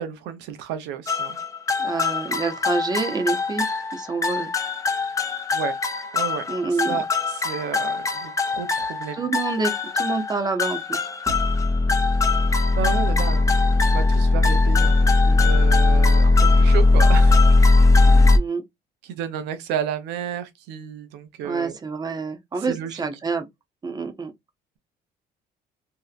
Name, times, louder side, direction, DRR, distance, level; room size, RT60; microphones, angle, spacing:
voice 1, 0.0-1.4 5.5-5.7 6.1-6.4 6.7-9.3 12.8-14.9 15.2-17.4 19.0-21.8 22.6-23.1, right 8 dB, 90° right, 0.6 m, -32 dB
sound 1, 1.1-18.4, left 3 dB, 20° left, 0.5 m, -19 dB
voice 2, 1.8-3.7 3.9-4.5 6.5-7.0 9.1-11.1 18.3-18.6 21.4-23.5 23.8-24.3, right 4 dB, 25° right, 0.6 m, -27 dB
2.7 x 2.1 x 2.4 m
cardioid pair, 110°, 17 cm